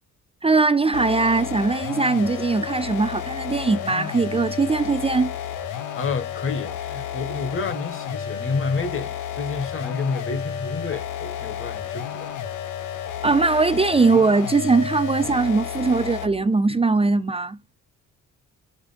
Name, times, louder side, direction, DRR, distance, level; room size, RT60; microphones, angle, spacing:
voice 1, 0.4-5.3 13.2-17.6, right 3 dB, 20° right, 0.5 m, -20 dB
sound 1, 0.9-16.4, left 8 dB, 85° left, 1.0 m, -32 dB
voice 2, 5.9-12.3, left 4 dB, 45° left, 1.5 m, -29 dB
5.2 x 4.3 x 5.1 m
cardioid pair, 90°, 30 cm